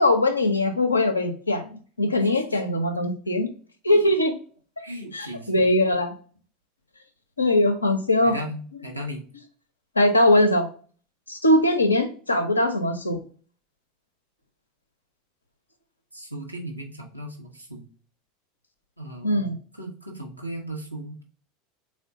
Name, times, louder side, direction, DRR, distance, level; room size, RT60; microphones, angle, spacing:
voice 1, 0.0-1.7 2.0-3.5 3.8-4.4 5.1-6.1 7.4-8.4 10.0-10.7 11.3-13.2 19.2-19.5, left 1 dB, 80° left, 5 dB, 0.5 m, -21 dB
voice 2, 4.8-5.6 8.2-9.2 16.1-17.8 19.0-21.2, equal, 85° right, 1 dB, 0.7 m, -36 dB
3.6 x 2.2 x 3.6 m, 0.42 s
figure-of-eight pair, 75°, 0 cm